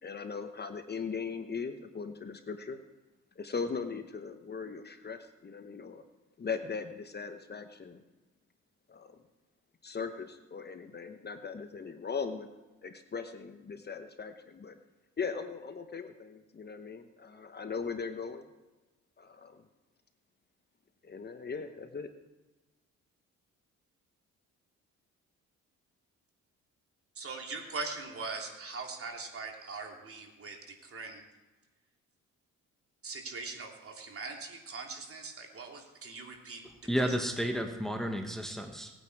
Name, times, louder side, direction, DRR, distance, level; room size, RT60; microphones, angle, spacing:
voice 1, 0.0-2.8 3.4-6.0 6.4-8.0 8.9-9.2 9.8-12.5 12.8-14.8 15.2-18.5 19.2-19.6 21.0-22.1, left 5 dB, 35° left, 8 dB, 1.1 m, -39 dB
voice 2, 27.1-30.6 30.8-31.2 33.0-36.6 37.0-37.1, right 4 dB, 50° right, 1 dB, 3.0 m, -41 dB
voice 3, 36.9-38.9, equal, ahead, 3 dB, 1.4 m, -32 dB
19.0 x 9.1 x 4.7 m, 1.2 s
cardioid pair, 90°, 30 cm